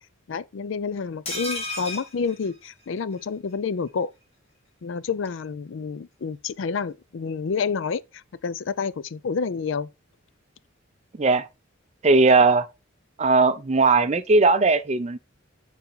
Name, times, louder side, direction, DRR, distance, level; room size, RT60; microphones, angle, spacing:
voice 1, 0.3-4.1 4.8-8.0 8.4-9.9, left 5 dB, 65° left, 0.4 m, -29 dB
sound 1, 1.3-3.2 3.5-3.6 3.9-4.0, left 2 dB, 30° left, 2.4 m, -34 dB
voice 2, 12.0-12.7 13.2-15.2, right 3 dB, 30° right, 0.5 m, -18 dB
6.9 x 4.1 x 3.9 m
head